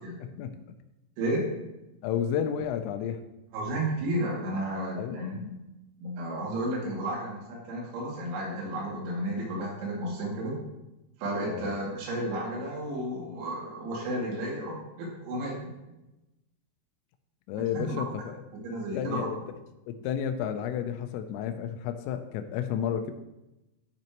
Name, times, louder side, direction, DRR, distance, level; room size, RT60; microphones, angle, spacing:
voice 1, 0.2-0.5 2.0-3.2 5.0-5.5 11.5-11.7 17.5-18.4 18.9-19.4 19.9-23.1, left 8 dB, 85° left, 7 dB, 3.3 m, -32 dB
voice 2, 1.2-1.5 3.5-5.5 6.0-10.6 11.2-15.6 17.9-18.0 18.5-19.3, right 1 dB, 90° right, -5 dB, 5.3 m, -32 dB
15.0 x 5.3 x 3.0 m, 0.96 s
omnidirectional pair, 6.0 m